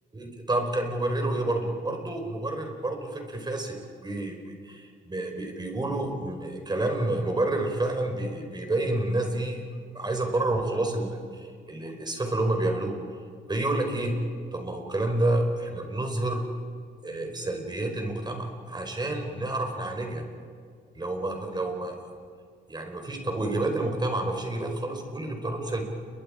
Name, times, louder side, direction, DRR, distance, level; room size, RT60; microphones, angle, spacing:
voice 1, 0.1-9.7 9.9-13.0 13.5-14.2 14.5-16.4 17.0-20.2 20.9-22.0 22.7-25.8, right 2 dB, 20° right, 4 dB, 4.6 m, -29 dB
29.5 x 23.0 x 5.1 m, 2.2 s
cardioid pair, 90°, 20 cm